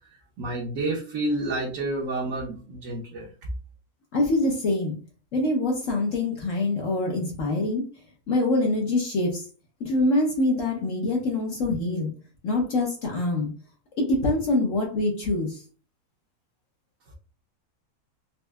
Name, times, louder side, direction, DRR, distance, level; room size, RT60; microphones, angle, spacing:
voice 1, 0.4-3.3, right 2 dB, 65° right, -3 dB, 1.2 m, -29 dB
voice 2, 4.1-5.0 5.3-7.8 8.3-9.5 9.8-12.1 12.4-13.5 14.0-15.6, left 2 dB, 60° left, 0 dB, 1.1 m, -24 dB
4.3 x 2.6 x 2.3 m, 0.37 s
omnidirectional pair, 1.6 m